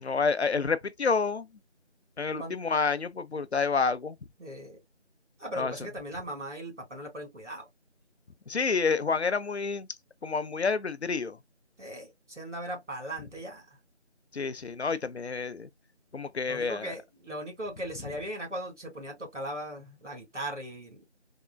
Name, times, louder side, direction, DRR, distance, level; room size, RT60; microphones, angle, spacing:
voice 1, 0.0-1.5 2.2-4.2 5.6-5.7 8.5-9.9 10.2-11.4 14.3-15.7 16.1-16.9, left 4 dB, 65° left, 0.5 m, -29 dB
voice 2, 4.4-4.8 5.4-7.7 11.8-13.6 16.5-21.0, right 1 dB, 85° right, 2.2 m, -38 dB
3.6 x 2.2 x 2.3 m
figure-of-eight pair, 175°, 35 cm